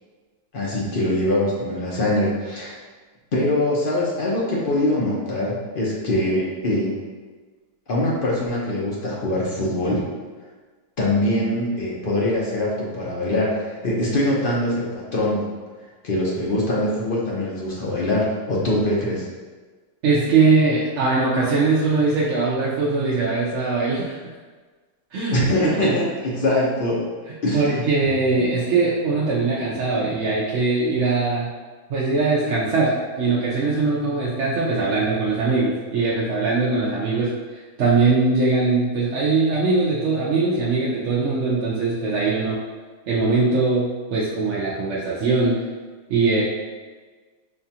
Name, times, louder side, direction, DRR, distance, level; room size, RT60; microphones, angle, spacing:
voice 1, 0.5-2.8 3.3-7.0 7.9-10.0 11.0-15.4 16.0-19.3 25.3-27.0 27.4-27.6 28.4-28.5, left 1 dB, 50° left, -5 dB, 0.7 m, -23 dB
voice 2, 20.0-24.2 25.1-25.9 27.5-31.5 31.9-42.6 43.1-45.6 46.1-46.4, right 3 dB, 60° right, -6 dB, 0.8 m, -21 dB
5.6 x 2.4 x 2.8 m, 1.4 s
omnidirectional pair, 1.7 m